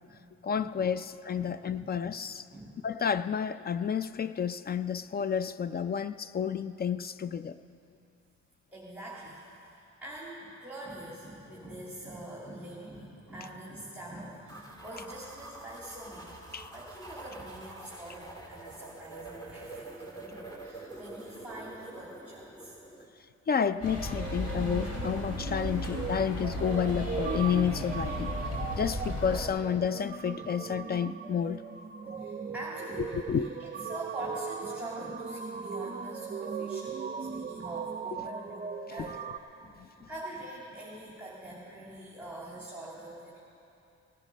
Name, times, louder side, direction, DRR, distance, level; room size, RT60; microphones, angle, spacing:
voice 1, 0.4-2.5 2.8-7.6 16.5-16.7 23.5-28.3 28.8-31.6 33.3-33.5 39.8-39.9, left 7 dB, 35° left, 14 dB, 0.4 m, -30 dB
voice 2, 1.3-1.9 2.5-2.8 8.7-9.4 9.7-16.3 16.7-22.7 24.8-25.0 25.5-25.8 28.5-28.7 30.4-30.5 32.0-33.5 33.8-39.3 39.6-43.4, right 1 dB, 5° right, -6 dB, 2.8 m, -44 dB
sound 1, 14.5-23.0, right 2 dB, 15° left, 2.2 m, -46 dB
sound 2, 23.7-39.4, right 6 dB, 30° right, 0.5 m, -39 dB
sound 3, 23.8-29.5, left 1 dB, 55° left, 3.0 m, -35 dB
18.0 x 11.0 x 5.1 m, 2.7 s
cardioid pair, 90°, 30 cm